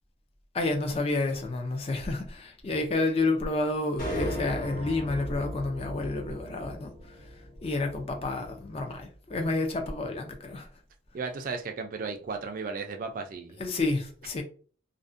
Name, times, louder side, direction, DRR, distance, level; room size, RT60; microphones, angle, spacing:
voice 1, 0.5-6.9 7.6-10.7 13.6-14.4, left 2 dB, 30° left, 0.4 m, -30 dB
sound 1, 4.0-8.4, equal, 50° left, 1.2 m, -37 dB
voice 2, 11.1-13.6, right 4 dB, 45° right, 0.4 m, -35 dB
2.4 x 2.1 x 2.5 m
head